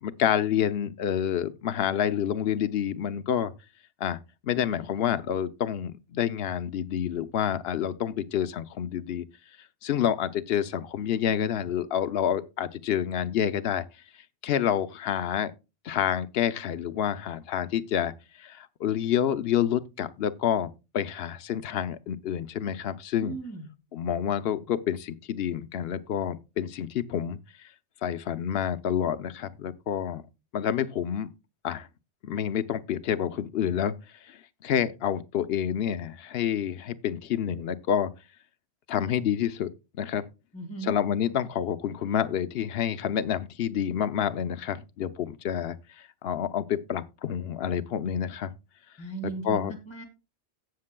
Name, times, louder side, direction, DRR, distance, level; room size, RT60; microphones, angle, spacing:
voice 1, 0.0-3.5 4.0-9.2 9.8-13.8 14.4-15.5 15.8-18.1 18.4-23.3 23.9-27.4 28.0-30.2 30.5-31.3 31.6-31.9 32.2-33.9 34.3-38.1 38.9-39.7 40.0-40.2 40.8-45.8 46.2-48.5 49.4-49.7, left 9 dB, 65° left, 0.8 m, -28 dB
voice 2, 23.2-23.7 40.5-41.0 49.0-50.0, right 4 dB, 25° left, 2.2 m, -37 dB
17.0 x 6.6 x 2.2 m
omnidirectional pair, 1.2 m